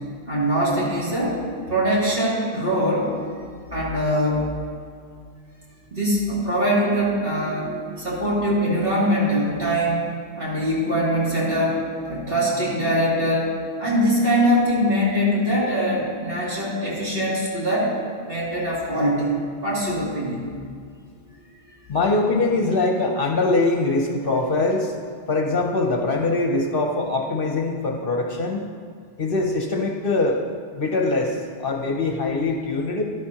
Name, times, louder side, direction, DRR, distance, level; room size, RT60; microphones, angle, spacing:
voice 1, 0.3-1.4 1.7-3.1 3.7-4.5 5.9-17.9 18.2-20.5, equal, 50° right, -8 dB, 3.0 m, -22 dB
voice 2, 7.5-8.0 21.9-24.9 25.3-28.7 29.2-30.4 30.7-33.1, left 3 dB, 55° left, 2 dB, 1.0 m, -23 dB
12.5 x 11.0 x 2.9 m, 2.2 s
omnidirectional pair, 1.2 m